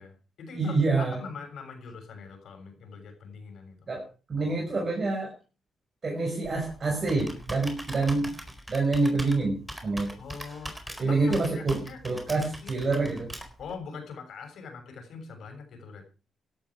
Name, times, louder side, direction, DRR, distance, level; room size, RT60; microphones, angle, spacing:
voice 1, 0.0-3.8 10.2-12.0 12.3-12.8 13.6-16.0, left 5 dB, 70° left, 5 dB, 6.9 m, -43 dB
voice 2, 0.5-1.2 3.9-4.0 4.3-5.3 6.0-8.3 8.7-10.1 11.0-13.3, right 3 dB, 40° right, 0 dB, 6.1 m, -27 dB
Computer keyboard, 6.4-13.7, right 1 dB, 10° right, 4.4 m, -42 dB
16.5 x 12.5 x 5.0 m, 0.35 s
cardioid pair, 95°, 0 cm